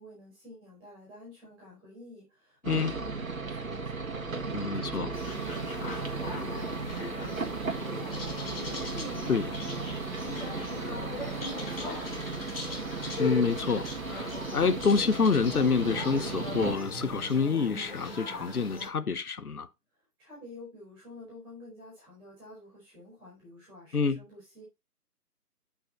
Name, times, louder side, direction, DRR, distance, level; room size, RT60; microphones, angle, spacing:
voice 1, 0.0-12.7 20.2-24.6, equal, 5° right, 3.5 m, -49 dB
voice 2, 2.6-2.9 4.5-5.1 9.3-9.4 13.2-19.7 23.9-24.2, left 5 dB, 65° left, 1.0 m, -27 dB
sound 1, 2.6-16.8, right 4 dB, 60° right, 1.8 m, -36 dB
sound 2, 5.1-18.9, left 2 dB, 35° left, 3.1 m, -39 dB
8.4 x 5.7 x 4.2 m
figure-of-eight pair, 145°, 47 cm